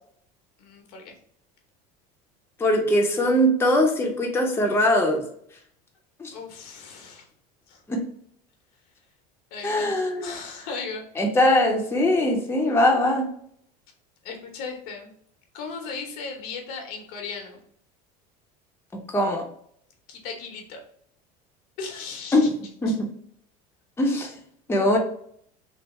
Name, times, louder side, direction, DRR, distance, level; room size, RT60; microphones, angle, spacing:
voice 1, 0.6-1.1 6.3-7.2 7.7-7.8 9.5-11.0 14.2-15.1 15.5-17.6 20.1-20.8 21.8-22.5 22.9-23.0, left 5 dB, 75° left, 3 dB, 0.9 m, -37 dB
voice 2, 2.6-5.2 6.2-6.3 7.9-8.0 9.6-10.3 11.2-13.2 19.1-19.4 22.3-22.4 22.8-23.1 24.0-24.3 24.7-25.0, left 1 dB, 10° left, 1 dB, 0.6 m, -21 dB
3.3 x 2.0 x 3.0 m, 0.66 s
supercardioid pair, 105°, 19 cm